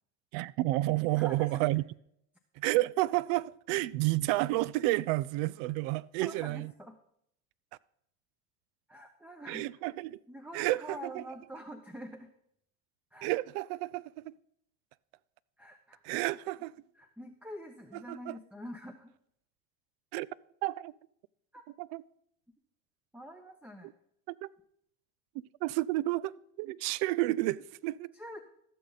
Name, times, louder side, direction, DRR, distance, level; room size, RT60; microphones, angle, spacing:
voice 1, 0.3-1.8 2.6-6.7 9.5-10.2 10.5-11.2 13.2-14.3 16.0-16.7 17.9-18.4 20.1-20.3 20.6-20.9 21.8-22.0 24.3-24.5 25.6-28.1, right 18 dB, 70° right, 0.5 m, -31 dB
voice 2, 1.2-1.7 6.2-6.9 8.9-9.7 10.3-12.3 13.1-13.3 15.6-16.0 17.0-19.1 21.5-21.7 23.1-23.9 28.1-28.4, equal, 5° right, 0.7 m, -46 dB
14.5 x 6.6 x 4.0 m
supercardioid pair, 105°, 32 cm